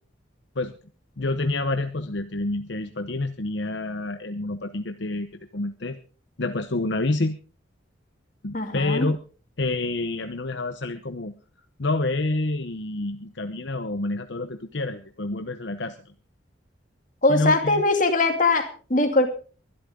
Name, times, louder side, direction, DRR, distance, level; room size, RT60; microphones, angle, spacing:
voice 1, 1.2-6.0 6.4-7.4 8.4-9.2 9.6-11.3 11.8-16.1 17.3-17.8, left 2 dB, 65° left, 8 dB, 0.9 m, -28 dB
voice 2, 8.5-9.1 17.2-19.3, left 2 dB, 45° left, 5 dB, 2.5 m, -21 dB
22.0 x 12.0 x 3.8 m, 0.38 s
head